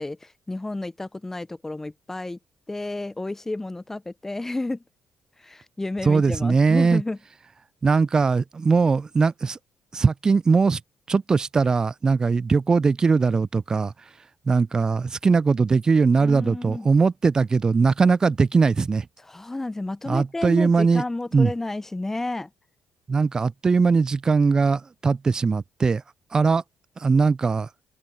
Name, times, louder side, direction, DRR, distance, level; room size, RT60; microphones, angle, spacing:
voice 1, 0.0-2.4 2.7-4.8 5.4-7.2 16.2-16.9 19.2-22.5, left 2 dB, 15° left, 0.7 m, -31 dB
voice 2, 6.0-7.0 7.8-9.6 9.9-10.8 11.1-13.9 14.5-19.1 20.1-21.0 21.3-21.5 23.1-26.0 26.3-26.6 27.0-27.7, right 4 dB, 35° right, 0.4 m, -20 dB
open air
hypercardioid pair, 45°, 2 cm